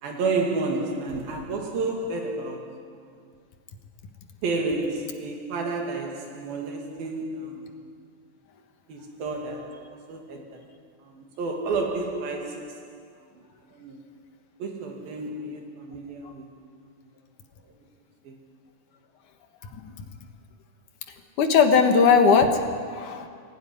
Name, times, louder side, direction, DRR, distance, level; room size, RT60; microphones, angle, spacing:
voice 1, 0.0-3.1 4.4-7.8 8.9-10.7 11.0-13.0 13.4-13.5 13.7-14.0 14.6-16.5 17.7-17.8 18.2-18.4, right 3 dB, 80° right, 4.2 m, -31 dB
voice 2, 19.7-20.0 21.4-22.6 22.9-23.3, left 5 dB, 65° left, 2.8 m, -19 dB
23.0 x 17.0 x 9.9 m
omnidirectional pair, 4.1 m